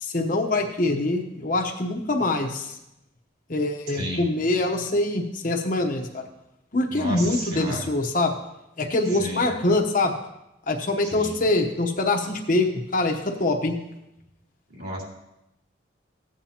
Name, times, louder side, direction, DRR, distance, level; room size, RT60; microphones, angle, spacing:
voice 1, 0.0-2.7 3.5-6.2 6.7-8.3 8.8-10.1 10.7-13.8, left 2 dB, 45° left, 3 dB, 0.9 m, -24 dB
voice 2, 6.9-7.8 9.2-9.4 11.1-11.3 14.7-15.0, equal, 55° right, -3 dB, 3.3 m, -32 dB
15.5 x 8.7 x 2.9 m, 0.90 s
head